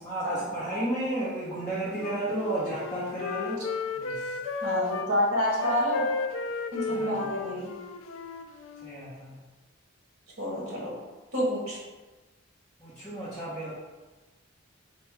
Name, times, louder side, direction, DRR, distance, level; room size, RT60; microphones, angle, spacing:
voice 1, 0.0-3.6 4.0-4.4 6.9-7.3 8.8-9.3 12.8-13.7, right 1 dB, 5° left, -12 dB, 0.9 m, -33 dB
Wind instrument woodwind instrument, 2.0-5.1 5.5-9.0, left 4 dB, 70° left, 0.3 m, -34 dB
voice 2, 4.6-6.0 6.7-7.7 10.4-10.9 11.3-11.8, equal, 50° right, -5 dB, 1.3 m, -28 dB
5.0 x 2.2 x 4.6 m, 1.2 s
head